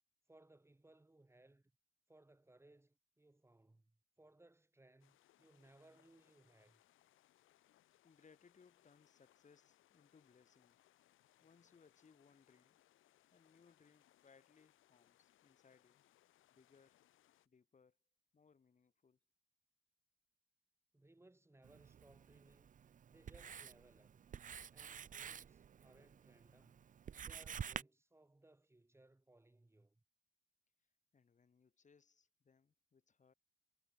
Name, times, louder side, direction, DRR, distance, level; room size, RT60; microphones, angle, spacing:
voice 1, 0.3-1.6 2.1-6.8 20.9-22.7 23.1-24.1 24.7-26.8 27.1-30.0, right 2 dB, 15° right, 7.6 m, -66 dB
sound 1, 5.0-17.5, left 14 dB, 85° left, 4.6 m, -73 dB
voice 2, 8.0-10.8 11.4-12.8 13.3-16.1 16.5-17.0 17.4-18.0 18.3-19.2 30.8-33.3, left 5 dB, 40° left, 6.7 m, -69 dB
Writing, 21.6-27.8, right 8 dB, 40° right, 0.7 m, -50 dB
cardioid pair, 90°, 20 cm